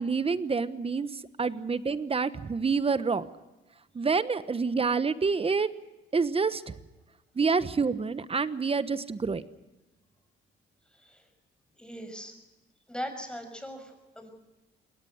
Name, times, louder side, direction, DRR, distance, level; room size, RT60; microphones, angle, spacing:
voice 1, 0.0-3.3 3.9-5.7 6.1-6.8 7.3-9.4, right 4 dB, 30° right, 14 dB, 1.1 m, -27 dB
voice 2, 11.8-12.3 12.9-14.3, equal, 5° left, 6 dB, 5.9 m, -39 dB
22.0 x 18.5 x 7.9 m, 1.1 s
cardioid pair, 90°, 20 cm